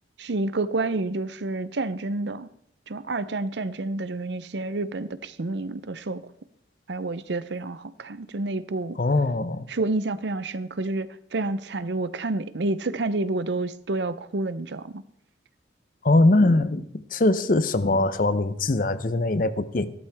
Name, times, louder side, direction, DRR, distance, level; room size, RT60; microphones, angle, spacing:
voice 1, 0.2-2.5 2.9-6.2 6.9-9.0 9.7-15.0, right 2 dB, 75° right, 15 dB, 0.6 m, -29 dB
voice 2, 9.0-9.7 16.0-19.9, left 2 dB, 50° left, 14 dB, 0.7 m, -22 dB
14.5 x 13.0 x 3.5 m, 0.69 s
head